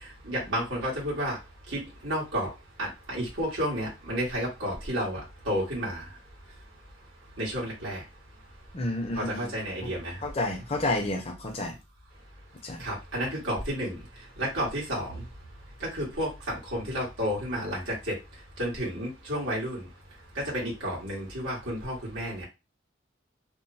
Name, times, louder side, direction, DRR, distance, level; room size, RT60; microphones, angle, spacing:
voice 1, 0.2-1.4 1.7-2.5 2.8-6.0 7.4-8.0 9.1-10.2 12.8-14.0 14.4-15.2 15.8-18.1 18.6-19.9 20.3-22.5, equal, 85° right, -5 dB, 1.5 m, -31 dB
voice 2, 8.7-9.5 9.8-9.9 10.2-11.7 12.6-12.8, left 2 dB, 30° left, 3 dB, 0.5 m, -30 dB
2.9 x 2.0 x 2.6 m, 0.26 s
head